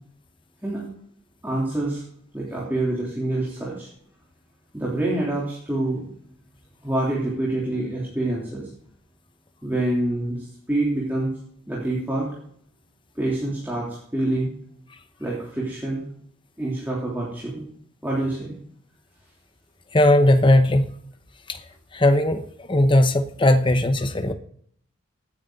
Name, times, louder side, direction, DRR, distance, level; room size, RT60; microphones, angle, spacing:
voice 1, 1.4-2.0 2.3-3.9 4.7-6.0 6.8-8.7 9.6-11.3 11.7-12.3 13.1-14.5 15.2-16.0 16.6-17.6 18.0-18.5, right 1 dB, 10° right, -5 dB, 3.3 m, -26 dB
voice 2, 19.9-20.8 21.9-22.4 22.7-24.3, left 1 dB, 25° left, 8 dB, 0.8 m, -17 dB
17.0 x 9.6 x 4.0 m, 0.64 s
head